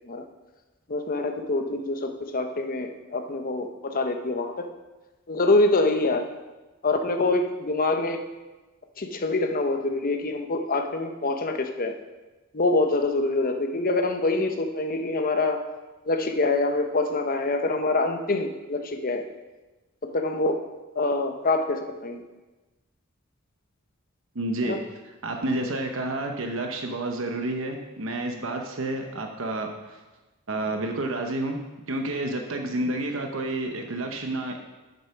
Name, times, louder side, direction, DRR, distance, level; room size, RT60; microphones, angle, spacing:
voice 1, 0.9-4.7 5.3-6.3 6.8-8.2 9.0-11.9 12.5-15.6 16.1-19.3 20.0-20.6 21.0-22.2 24.6-24.8, left 2 dB, 45° left, 5 dB, 0.8 m, -25 dB
voice 2, 24.3-24.8 25.2-30.0 30.5-34.6, right 2 dB, 65° right, 3 dB, 0.9 m, -30 dB
8.0 x 6.7 x 5.8 m, 1.2 s
head